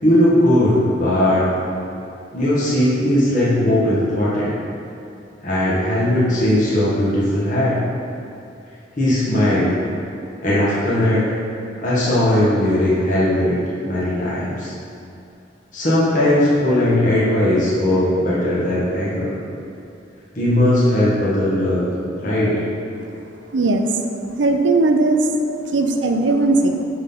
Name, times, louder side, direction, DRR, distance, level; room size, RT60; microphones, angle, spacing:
voice 1, 0.0-1.4 2.3-4.5 5.4-7.8 9.0-9.7 10.4-11.2 11.8-13.5 13.9-14.7 15.7-19.4 20.3-21.9 22.2-22.6, left 1 dB, 45° left, -9 dB, 1.6 m, -18 dB
voice 2, 23.5-24.0 24.4-25.3 25.7-26.8, right 2 dB, 75° right, 5 dB, 0.6 m, -18 dB
8.7 x 3.9 x 5.7 m, 2.6 s
head